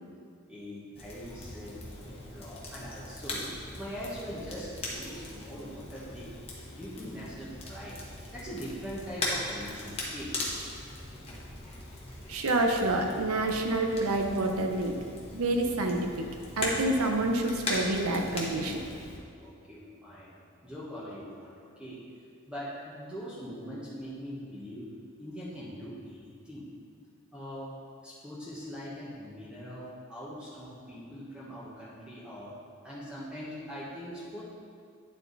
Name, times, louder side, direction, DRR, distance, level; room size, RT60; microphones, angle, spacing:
voice 1, 0.5-6.3 6.7-8.0 8.3-10.3 19.4-20.4 20.6-22.0 22.5-24.9 25.2-26.6 27.3-27.7 28.0-32.5 32.8-34.4, equal, 5° right, -8 dB, 1.2 m, -42 dB
Crackle, 0.9-19.2, left 2 dB, 25° left, 1.0 m, -39 dB
voice 2, 12.3-15.0 15.3-16.3 16.6-18.8, right 2 dB, 85° right, 3 dB, 0.7 m, -28 dB
9.5 x 4.5 x 4.0 m, 2.2 s
head